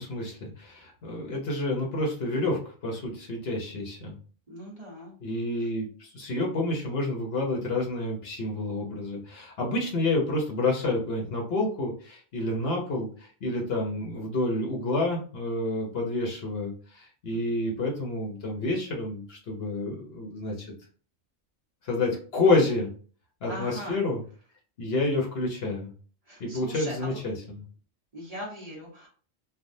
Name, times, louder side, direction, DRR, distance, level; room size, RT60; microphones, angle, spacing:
voice 1, 0.0-4.2 5.2-20.7 21.8-22.9 23.4-24.2 24.8-25.9 26.4-27.6, left 2 dB, 60° left, 0 dB, 1.0 m, -29 dB
voice 2, 4.5-5.1 17.3-17.6 23.5-24.0 26.3-27.2 28.1-29.1, equal, 35° right, -4 dB, 1.1 m, -40 dB
3.4 x 2.3 x 2.6 m, 0.41 s
omnidirectional pair, 1.2 m